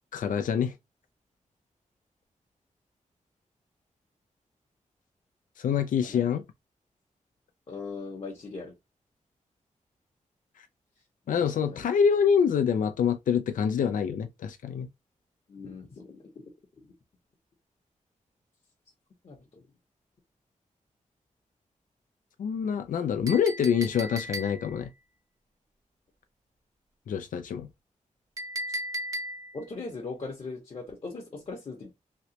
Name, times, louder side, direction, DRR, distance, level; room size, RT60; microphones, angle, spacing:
voice 1, 0.1-0.7 5.6-6.4 11.3-14.9 22.4-24.9 27.1-27.7, left 7 dB, 90° left, 0.4 m, -26 dB
voice 2, 7.7-8.7 11.3-11.8 15.5-16.5 19.2-19.6 29.5-31.9, left 3 dB, 45° left, 0.8 m, -40 dB
Chink clink, 23.3-24.8 28.4-29.6, right 1 dB, 25° right, 0.6 m, -36 dB
3.0 x 3.0 x 2.8 m
wide cardioid pair, 165°, 13 cm